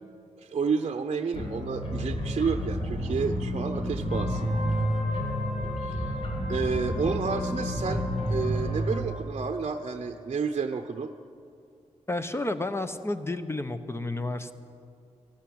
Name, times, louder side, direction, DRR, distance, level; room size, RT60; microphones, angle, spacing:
voice 1, 0.4-4.5 5.8-6.2 6.5-11.1, right 5 dB, 50° right, 6 dB, 0.7 m, -30 dB
sound 1, 1.3-8.9, equal, 45° left, 3.0 m, -30 dB
Wind instrument woodwind instrument, 4.0-9.2, left 3 dB, 65° left, 2.1 m, -39 dB
voice 2, 12.1-14.5, left 2 dB, 20° left, 10 dB, 0.9 m, -31 dB
14.0 x 11.5 x 8.7 m, 2.4 s
cardioid pair, 60°, 13 cm